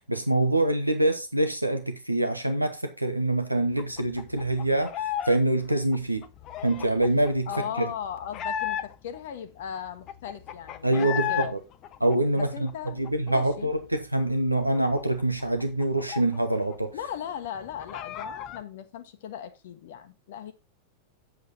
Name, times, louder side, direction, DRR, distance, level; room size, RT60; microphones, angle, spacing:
voice 1, 0.1-6.2 6.6-7.5 7.8-7.9 10.8-11.5 12.0-12.7 13.0-16.9, right 1 dB, 85° right, 1.1 m, -25 dB
sound 1, 3.8-5.4 5.6-9.2 9.6-9.7 9.9-11.5 11.8-13.5 13.9-14.0 14.3-16.7 17.0-17.1 17.4-18.6, left 10 dB, 35° left, 0.7 m, -35 dB
voice 2, 7.5-11.5 12.3-13.7 16.9-20.5, left 9 dB, 55° left, 1.0 m, -38 dB
8.0 x 7.8 x 4.0 m
figure-of-eight pair, 90°, 0 cm